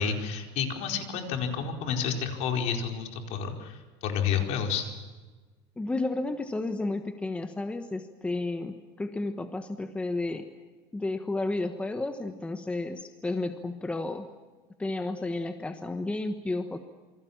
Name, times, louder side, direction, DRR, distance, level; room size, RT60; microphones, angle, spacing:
voice 1, 0.0-5.0, left 6 dB, 50° left, 4 dB, 4.7 m, -30 dB
voice 2, 5.8-10.5 10.9-14.3 14.8-16.8, left 2 dB, 10° left, 8 dB, 1.2 m, -32 dB
27.5 x 25.0 x 7.3 m, 1.3 s
cardioid pair, 150°, 14 cm